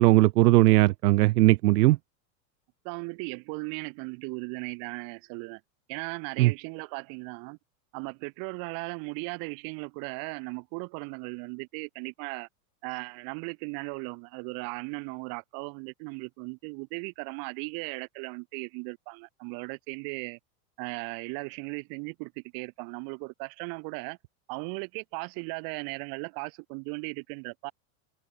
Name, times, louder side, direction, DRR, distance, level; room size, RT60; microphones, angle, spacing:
voice 1, 0.0-2.0 6.4-6.5, right 18 dB, 85° right, 0.7 m, -19 dB
voice 2, 2.8-5.6 5.9-7.6 7.9-12.5 12.8-20.4 20.8-24.2 24.5-27.7, right 34 dB, 50° right, 3.8 m, -37 dB
supercardioid pair, 145°, 46 cm